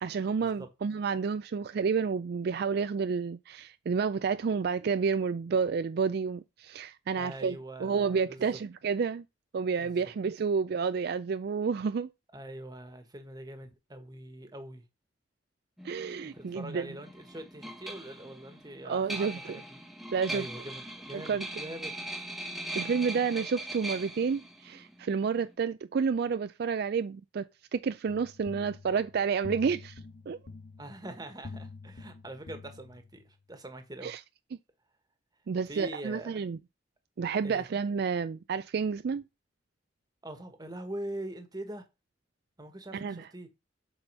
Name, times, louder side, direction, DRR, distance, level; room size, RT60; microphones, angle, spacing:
voice 1, 0.0-9.2 9.5-12.1 15.8-16.9 18.8-19.6 20.1-20.5 21.1-21.5 22.7-30.0 30.3-30.4 34.0-34.2 35.5-36.6 37.2-39.2 42.9-43.3, right 5 dB, 60° right, 0.4 m, -30 dB
voice 2, 7.2-8.4 9.8-10.1 12.3-14.8 16.2-19.8 20.3-22.0 30.8-34.1 35.7-36.4 37.4-37.7 40.2-41.8 42.6-43.5, right 1 dB, 20° right, 1.4 m, -43 dB
sound 1, 15.8-25.5, right 1 dB, ahead, 1.0 m, -41 dB
sound 2, 28.1-33.3, left 3 dB, 65° left, 1.2 m, -47 dB
7.9 x 4.3 x 5.5 m
head